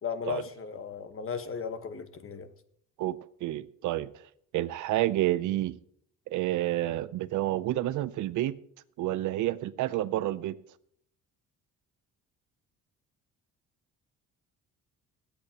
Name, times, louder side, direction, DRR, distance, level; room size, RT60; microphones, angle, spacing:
voice 1, 0.0-2.5, left 6 dB, 45° left, 10 dB, 1.3 m, -36 dB
voice 2, 3.4-4.1 4.5-5.8 6.3-8.6 9.0-10.6, right 14 dB, 80° right, 14 dB, 0.6 m, -29 dB
25.0 x 8.5 x 2.9 m, 0.65 s
cardioid pair, 90°, 30 cm